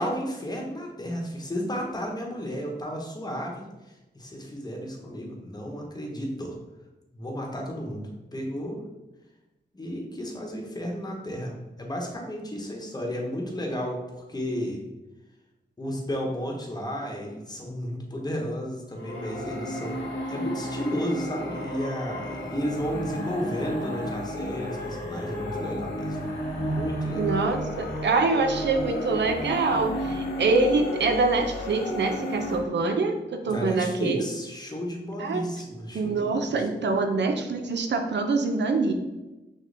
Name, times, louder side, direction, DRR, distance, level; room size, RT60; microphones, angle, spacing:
voice 1, 0.0-6.6 7.1-8.8 9.7-14.8 15.8-26.2 26.6-27.2 33.4-36.6, equal, 20° left, -1 dB, 1.0 m, -33 dB
sound 1, 18.9-32.6, equal, 90° left, 1.3 m, -32 dB
voice 2, 27.2-34.3 35.2-35.4 35.9-38.9, right 3 dB, 75° right, 6 dB, 0.6 m, -25 dB
6.3 x 2.2 x 3.3 m, 1.0 s
cardioid pair, 60°, 18 cm